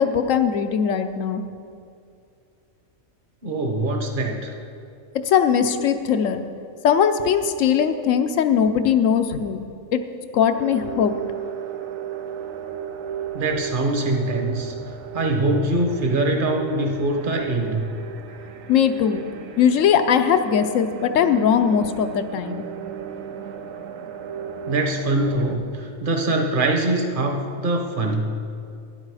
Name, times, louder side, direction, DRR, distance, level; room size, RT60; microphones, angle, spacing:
voice 1, 0.0-1.4 5.3-6.4 6.8-10.0 10.3-11.2 18.7-19.2 19.6-22.7, left 8 dB, 75° left, 9 dB, 1.0 m, -20 dB
voice 2, 3.4-4.5 13.3-14.7 15.1-17.9 24.7-28.4, right 2 dB, 40° right, 3 dB, 1.2 m, -23 dB
sound 1, 10.5-25.6, right 8 dB, 80° right, 1.1 m, -35 dB
12.0 x 10.0 x 4.8 m, 2.4 s
omnidirectional pair, 1.4 m